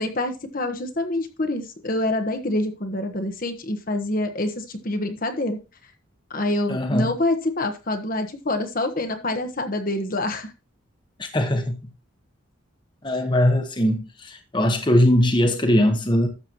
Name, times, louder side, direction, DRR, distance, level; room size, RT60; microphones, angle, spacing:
voice 1, 0.0-5.6 6.3-10.5, left 1 dB, 40° left, 1.2 m, -26 dB
voice 2, 6.7-7.1 11.2-11.8 13.0-16.3, left 1 dB, 20° left, 1.2 m, -20 dB
12.5 x 7.7 x 3.0 m
head